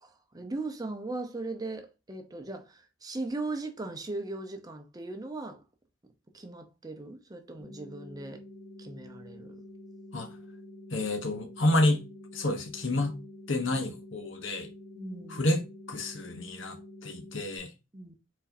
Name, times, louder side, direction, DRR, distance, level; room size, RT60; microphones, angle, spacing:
voice 1, 0.0-5.6 6.3-8.4 8.8-9.6 15.0-15.4 17.9-18.1, right 2 dB, 20° right, 0.7 m, -38 dB
sound 1, 7.6-17.6, left 1 dB, 65° left, 1.4 m, -48 dB
voice 2, 10.9-12.0 12.3-13.2 13.5-14.7 15.3-15.6 15.9-16.8 17.0-17.7, left 1 dB, 85° left, 1.0 m, -29 dB
4.5 x 4.2 x 2.7 m
head